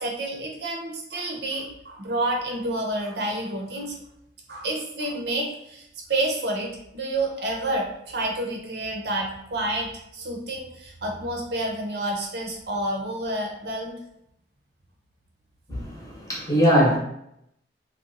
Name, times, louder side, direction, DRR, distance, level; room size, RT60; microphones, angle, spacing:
voice 1, 0.0-3.9 4.5-14.0, right 1 dB, 65° right, 0 dB, 0.7 m, -29 dB
voice 2, 15.7-17.0, equal, 20° left, -4 dB, 0.8 m, -21 dB
2.8 x 2.2 x 3.7 m, 0.78 s
head